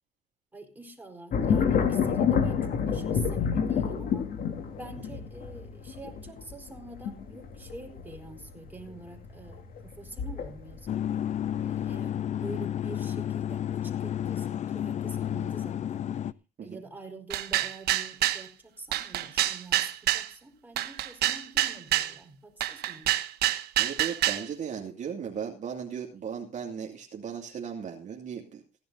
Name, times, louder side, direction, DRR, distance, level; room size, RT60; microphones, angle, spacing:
voice 1, 0.5-4.2 4.7-11.3 11.6-16.1 16.6-23.2, right 2 dB, 10° right, 3 dB, 4.4 m, -46 dB
sound 1, 1.3-10.9 11.4-11.9, left 7 dB, 60° left, 2.8 m, -28 dB
sound 2, 10.9-16.3, left 10 dB, 45° left, 0.6 m, -31 dB
sound 3, 17.3-18.4 18.9-20.3 20.8-22.1 22.6-24.5, right 13 dB, 70° right, 1.2 m, -27 dB
voice 2, 23.8-28.6, right 7 dB, 45° right, 1 dB, 2.4 m, -36 dB
16.0 x 11.0 x 4.0 m, 0.33 s
cardioid pair, 110°, 17 cm